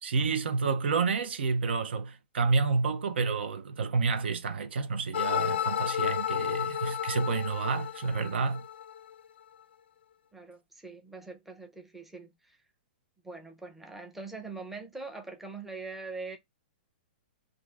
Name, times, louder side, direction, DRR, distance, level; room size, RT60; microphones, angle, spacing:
voice 1, 0.0-8.7, right 4 dB, 85° right, 0.7 m, -29 dB
sound 1, 5.1-9.1, left 10 dB, 85° left, 0.4 m, -32 dB
voice 2, 10.3-12.6 13.2-16.4, right 3 dB, 5° right, 0.5 m, -42 dB
2.6 x 2.4 x 3.2 m
hypercardioid pair, 150°, 6 cm